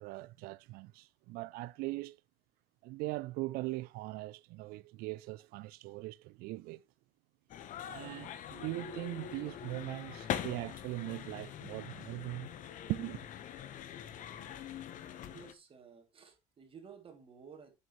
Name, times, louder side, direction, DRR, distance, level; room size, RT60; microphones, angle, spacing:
voice 1, 0.0-2.2 2.8-6.9 7.9-12.5 12.9-13.2, right 20 dB, 70° right, 0.5 m, -40 dB
sound 1, 7.5-15.5, left 10 dB, 50° left, 1.2 m, -43 dB
voice 2, 15.3-17.7, right 6 dB, 35° right, 2.8 m, -54 dB
8.2 x 7.5 x 3.1 m
supercardioid pair, 110°, 16 cm